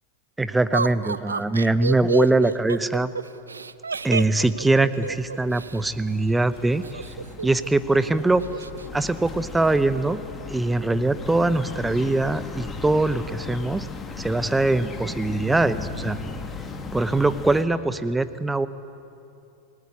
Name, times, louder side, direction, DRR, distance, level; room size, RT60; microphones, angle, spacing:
voice 1, 0.4-3.1 4.0-7.0 7.4-8.4 8.9-10.2 10.5-13.9 14.2-16.2 16.9-18.7, right 2 dB, 10° right, 14 dB, 0.9 m, -22 dB
Laughter, 0.7-5.8 6.8-7.7 8.0-8.1 8.4-8.9, right 5 dB, 75° right, 0.6 m, -29 dB
sound 1, 4.4-17.6, left 4 dB, 20° left, 2.1 m, -37 dB
27.0 x 19.5 x 9.6 m, 2.8 s
figure-of-eight pair, 90°, 0 cm